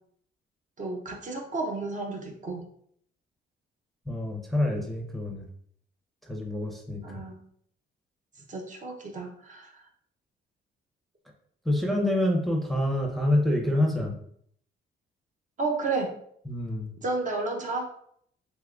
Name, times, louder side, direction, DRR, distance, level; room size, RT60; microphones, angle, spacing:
voice 1, 0.8-2.7 7.0-7.4 8.5-9.9 15.6-16.1 17.0-17.9, right 3 dB, 40° right, 2 dB, 0.6 m, -32 dB
voice 2, 4.1-5.4 6.3-7.0 11.7-14.1 16.5-16.9, left 1 dB, ahead, 0 dB, 0.6 m, -27 dB
3.6 x 3.0 x 2.3 m, 0.65 s
cardioid pair, 90°, 20 cm